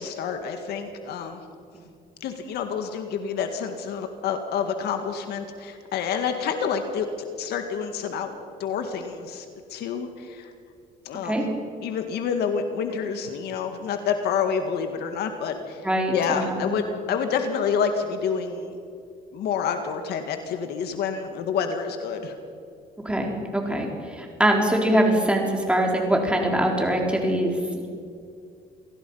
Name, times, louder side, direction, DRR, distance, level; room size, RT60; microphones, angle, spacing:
voice 1, 0.0-1.4 2.2-7.1 7.4-8.3 8.6-10.5 11.0-11.4 11.8-15.8 16.1-18.8 19.3-22.3, left 6 dB, 75° left, 6 dB, 2.0 m, -28 dB
voice 2, 15.8-16.8 23.0-27.9, right 1 dB, 5° right, 1 dB, 4.0 m, -23 dB
27.5 x 17.5 x 5.7 m, 2.3 s
cardioid pair, 110°, 17 cm